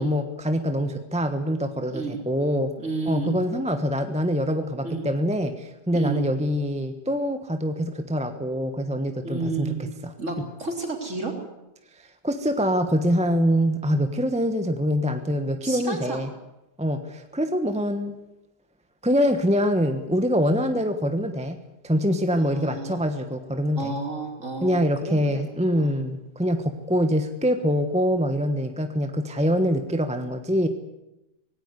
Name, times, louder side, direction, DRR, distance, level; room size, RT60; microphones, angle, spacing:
voice 1, 0.0-2.7 3.1-10.4 12.2-16.3 16.8-18.1 19.0-21.6 21.8-24.0 24.6-30.7, equal, 5° right, 7 dB, 1.0 m, -24 dB
voice 2, 1.9-2.2 2.8-3.3 4.8-5.1 5.9-6.2 9.2-9.8 10.2-11.3 15.6-16.3 22.3-23.0 23.8-25.5 25.7-25.9, right 3 dB, 40° right, 2 dB, 4.0 m, -31 dB
18.5 x 17.5 x 9.6 m, 0.95 s
omnidirectional pair, 1.9 m